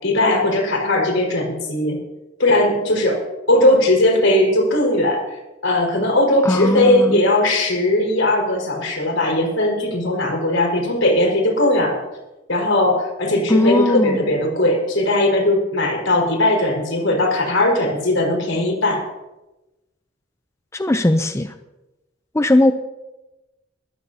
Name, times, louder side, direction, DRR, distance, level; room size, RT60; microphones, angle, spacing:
voice 1, 0.0-2.0 2.4-3.2 3.5-5.2 5.6-12.0 12.5-19.0, left 1 dB, 85° left, 0 dB, 5.0 m, -18 dB
voice 2, 6.4-7.2 13.5-14.2 20.7-21.5 22.3-22.7, left 1 dB, 15° left, 8 dB, 0.6 m, -18 dB
20.5 x 14.5 x 2.8 m, 1.0 s
head